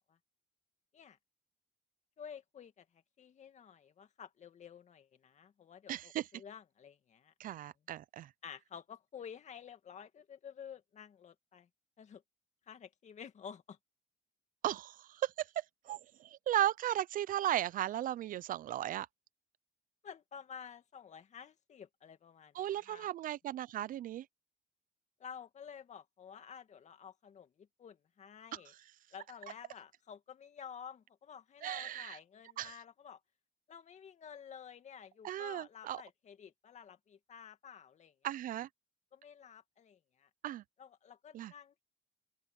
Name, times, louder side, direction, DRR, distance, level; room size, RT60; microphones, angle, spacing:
voice 1, 2.2-7.6 8.4-11.7 12.0-12.2 12.7-13.8 20.0-23.1 25.2-28.7 29.1-33.2 33.7-38.1 39.1-40.3 40.8-41.8, left 7 dB, 45° left, 2.2 m, -51 dB
voice 2, 5.9-6.3 7.4-8.3 14.6-19.1 22.5-24.3 28.5-28.6 31.6-32.2 32.6-32.8 35.2-36.0 38.2-38.7 40.4-40.6 41.3-41.5, right 12 dB, 55° right, 0.5 m, -36 dB
open air
cardioid pair, 110°, 17 cm